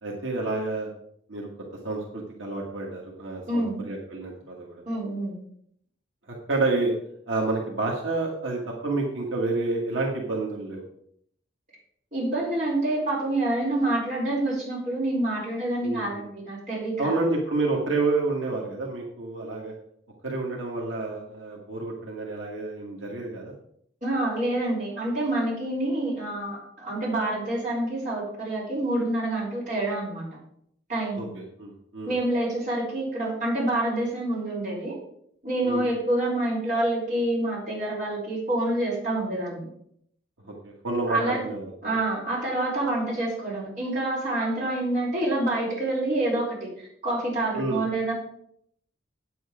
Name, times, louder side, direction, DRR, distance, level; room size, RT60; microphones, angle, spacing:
voice 1, 0.0-0.9 1.3-1.5 1.8-4.8 6.5-6.9 7.3-10.8 15.8-16.2 17.0-19.7 20.2-23.5 31.2-32.1 35.6-35.9 40.4-41.9 47.5-47.8, right 3 dB, 85° right, -2 dB, 1.7 m, -29 dB
voice 2, 3.5-3.8 4.9-5.4 12.1-17.2 24.0-30.3 30.9-31.3 32.1-35.0 35.4-39.7 41.1-41.4 41.8-48.1, right 1 dB, 40° right, -6 dB, 4.8 m, -27 dB
8.7 x 8.0 x 4.9 m, 0.69 s
head